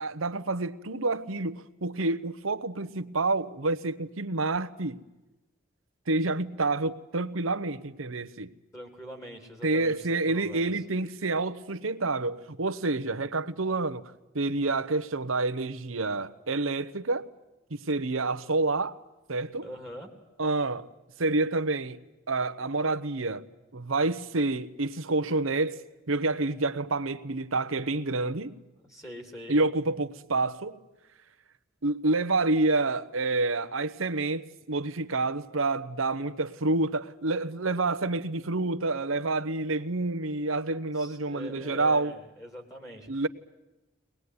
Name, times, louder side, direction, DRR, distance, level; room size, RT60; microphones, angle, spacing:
voice 1, 0.0-5.0 6.1-8.5 9.6-17.3 17.7-19.0 19.3-19.7 20.4-20.9 21.2-22.0 22.3-25.8 26.1-28.6 29.5-30.8 31.8-42.1 43.1-43.3, right 2 dB, 80° right, 1.1 m, -28 dB
voice 2, 8.7-10.7 19.6-20.1 28.8-29.6 40.9-43.2, equal, 15° left, 3.2 m, -43 dB
23.0 x 20.0 x 9.7 m
head